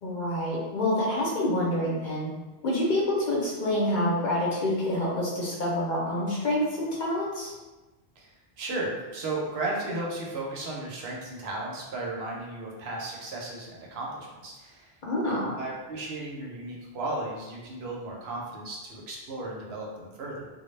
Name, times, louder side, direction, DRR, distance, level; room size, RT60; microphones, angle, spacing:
voice 1, 0.0-2.3 2.6-7.5 15.0-15.5, left 1 dB, 55° left, -5 dB, 0.7 m, -27 dB
voice 2, 8.2-15.0 15.2-20.5, right 2 dB, 75° right, -3 dB, 0.8 m, -35 dB
2.1 x 2.0 x 3.1 m, 1.2 s
omnidirectional pair, 1.1 m